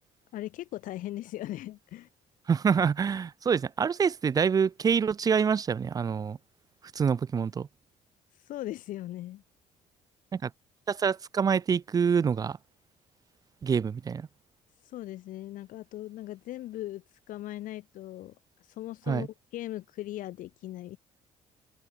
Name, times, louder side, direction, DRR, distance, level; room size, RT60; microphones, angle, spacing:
voice 1, 0.3-2.1 8.5-9.4 14.9-18.4 18.7-19.3 19.5-21.0, left 14 dB, 70° left, 0.8 m, -39 dB
voice 2, 2.5-6.4 6.9-7.7 10.3-10.5 10.9-12.6 13.6-14.3 19.1-19.3, right 6 dB, 25° right, 0.3 m, -26 dB
open air
cardioid pair, 100°, 14 cm